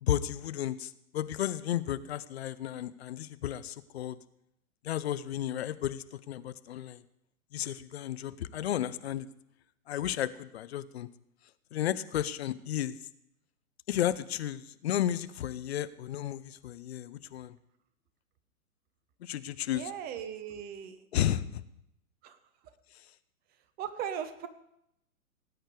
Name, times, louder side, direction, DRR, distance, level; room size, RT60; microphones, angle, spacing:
voice 1, 0.0-4.2 4.8-7.0 7.5-9.3 9.9-11.1 11.7-13.0 13.9-17.6 19.2-19.9 21.1-21.6, left 11 dB, 45° left, 14 dB, 0.8 m, -33 dB
voice 2, 19.7-21.1 22.2-22.4 23.8-24.5, right 9 dB, 20° right, 11 dB, 1.0 m, -38 dB
18.5 x 8.9 x 4.9 m, 0.79 s
figure-of-eight pair, 115°, 44 cm